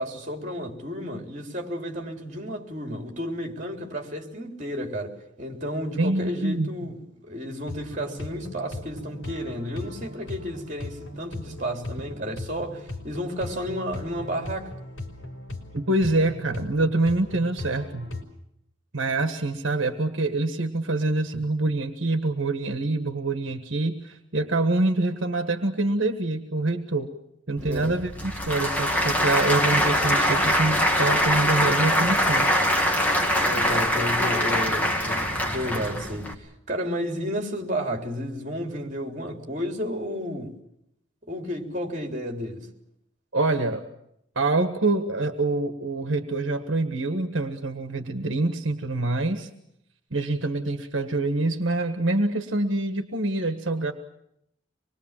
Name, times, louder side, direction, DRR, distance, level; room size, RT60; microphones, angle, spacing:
voice 1, 0.0-7.0 7.2-14.7 27.6-28.0 33.4-40.5 41.3-42.7, equal, 35° right, 3.7 m, -32 dB
voice 2, 6.0-6.7 15.7-18.1 18.9-27.1 27.5-32.5 43.3-43.8 44.3-49.5 50.1-53.9, right 2 dB, 70° right, 1.5 m, -25 dB
sound 1, 7.7-18.2, left 2 dB, 75° left, 4.6 m, -38 dB
Applause / Crowd, 27.6-36.3, equal, 10° left, 2.3 m, -23 dB
25.5 x 21.5 x 7.5 m
head